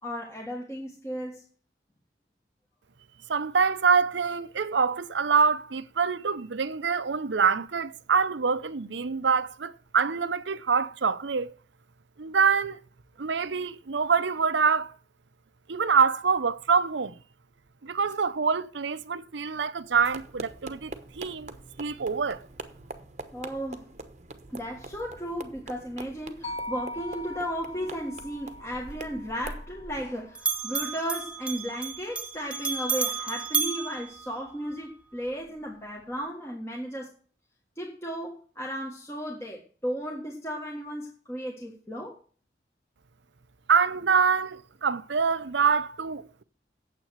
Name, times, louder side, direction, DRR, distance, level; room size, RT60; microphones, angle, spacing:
voice 1, 0.0-1.4 23.3-23.9 24.5-37.1 37.8-42.1, equal, 15° left, 1.6 m, -35 dB
voice 2, 3.3-11.5 12.2-12.8 13.2-14.9 15.7-17.2 17.8-21.5 21.8-22.5 43.7-46.4, right 5 dB, 80° right, 0.7 m, -25 dB
sound 1, 19.9-29.7, right 2 dB, 40° right, 1.0 m, -44 dB
sound 2, 26.4-30.6, left 1 dB, 30° left, 2.0 m, -41 dB
Bell, 28.7-30.1 30.4-34.8, right 5 dB, 5° right, 0.9 m, -32 dB
9.2 x 7.7 x 6.4 m
head